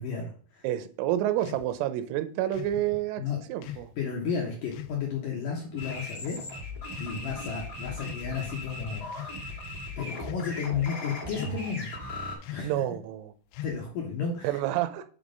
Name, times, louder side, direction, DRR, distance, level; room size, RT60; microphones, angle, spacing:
voice 1, 0.0-0.7 3.2-3.4 4.0-6.4 7.0-9.1 9.3-11.9 12.4-12.7 13.6-14.6, left 6 dB, 70° left, -2 dB, 2.1 m, -33 dB
voice 2, 0.6-3.2 3.5-3.9 12.6-13.3 14.4-15.0, right 13 dB, 90° right, 11 dB, 3.3 m, -29 dB
sound 1, 1.4-1.7 2.5-2.8 3.6-3.9 4.7-5.0 5.8-6.1 6.9-7.5 8.0-8.3 9.0-9.4 10.2-10.6 11.3-11.7 12.4-12.8 13.5-14.0, left 13 dB, 85° left, 2.5 m, -41 dB
sound 2, 5.8-12.4, left 1 dB, 30° left, 1.6 m, -38 dB
7.9 x 3.7 x 5.2 m, 0.43 s
omnidirectional pair, 5.5 m